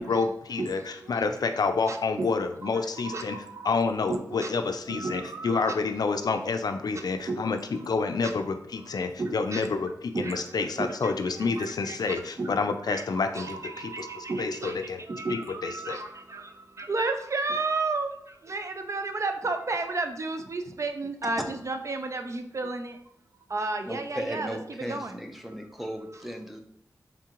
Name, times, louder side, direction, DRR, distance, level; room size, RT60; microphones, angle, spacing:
voice 1, 0.0-15.0 15.3-16.0, left 4 dB, 70° left, 7 dB, 0.4 m, -29 dB
voice 2, 1.9-2.3 2.6-3.8 4.1-4.5 4.9-5.7 7.3-7.6 9.2-9.6 10.1-10.4 10.8-11.1 11.5-12.0 12.4-12.5 12.9-13.0 13.3-14.8 15.1-16.4 16.8-18.1 18.5-22.9 23.5-25.1, right 3 dB, 45° right, 6 dB, 0.4 m, -32 dB
voice 3, 23.9-26.6, equal, ahead, 4 dB, 0.6 m, -36 dB
3.7 x 3.6 x 2.9 m, 0.76 s
wide cardioid pair, 75°, 7 cm